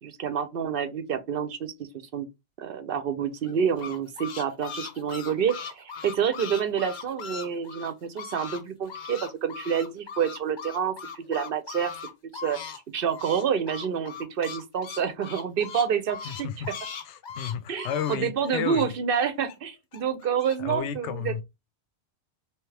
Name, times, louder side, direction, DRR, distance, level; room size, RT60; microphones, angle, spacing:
voice 1, 0.0-1.7 2.1-2.3 2.6-11.9 12.3-12.6 12.9-16.5 17.7-21.4, right 7 dB, 60° right, 0.7 m, -28 dB
sound 1, 3.4-8.6 8.9-12.8 13.0-19.5 19.9-20.6, left 6 dB, 50° left, 0.7 m, -39 dB
voice 2, 16.2-16.7 17.0-18.9 20.6-21.4, left 9 dB, 85° left, 0.9 m, -32 dB
3.4 x 3.0 x 3.2 m
omnidirectional pair, 1.2 m